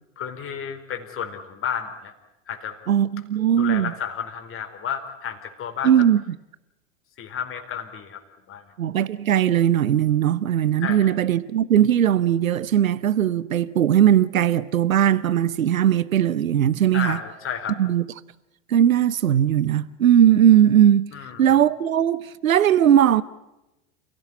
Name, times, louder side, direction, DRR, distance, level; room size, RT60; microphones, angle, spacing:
voice 1, 0.2-2.1 2.5-2.8 3.5-5.9 7.2-8.2 8.5-8.6 10.8-11.1 16.9-17.8 21.1-21.5, left 8 dB, 30° left, 4.4 m, -32 dB
voice 2, 2.9-3.9 5.8-6.4 8.8-17.2 17.8-18.0 18.7-21.1 21.4-23.2, right 10 dB, 80° right, 1.0 m, -19 dB
29.0 x 17.0 x 9.9 m
hypercardioid pair, 90°, 40 cm